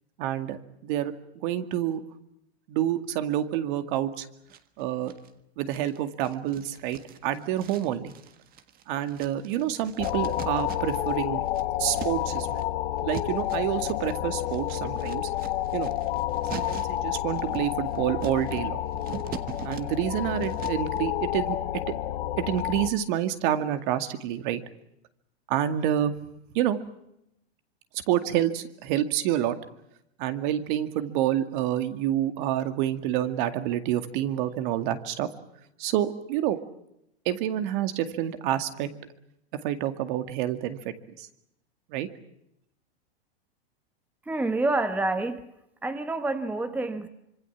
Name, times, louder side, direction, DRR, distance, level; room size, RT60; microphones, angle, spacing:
voice 1, 0.2-2.0 2.7-4.3 4.8-5.1 5.6-8.1 8.9-11.4 11.8-12.6 13.0-15.3 15.7-15.9 16.5-18.8 19.6-21.6 21.9-22.0 22.5-24.6 25.5-26.1 26.5-26.8 28.1-29.6 30.2-35.3 35.8-36.6 37.3-38.9 39.6-41.3 41.9-42.1, right 11 dB, 50° right, 9 dB, 2.2 m, -28 dB
sound 1, 4.5-5.3 5.7-11.2 11.4-21.0, right 9 dB, 25° right, 1.6 m, -43 dB
sound 2, 10.0-22.9, left 13 dB, 55° left, 1.6 m, -30 dB
voice 2, 44.3-45.4 45.8-47.1, right 2 dB, 5° right, 10 dB, 1.1 m, -27 dB
25.5 x 24.0 x 7.3 m, 0.81 s
hypercardioid pair, 135°, 33 cm